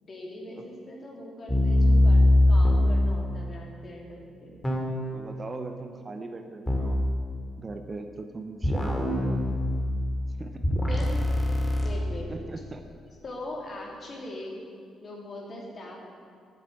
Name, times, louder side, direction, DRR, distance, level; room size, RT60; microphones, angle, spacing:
voice 1, 0.0-4.5 10.9-11.2 11.8-12.5 13.2-14.6 15.0-16.0, left 1 dB, 40° left, -1 dB, 2.9 m, -41 dB
sound 1, 1.5-3.0 4.6-5.2 6.7-7.0 8.6-10.1 10.6-11.9, left 1 dB, 15° left, 2.4 m, -22 dB
voice 2, 5.1-7.0 7.6-9.6 10.4-10.6 12.3-12.8 15.8-15.9, right 3 dB, 30° right, 6 dB, 0.8 m, -39 dB
9.0 x 7.5 x 8.7 m, 2.4 s
cardioid pair, 90°, 0 cm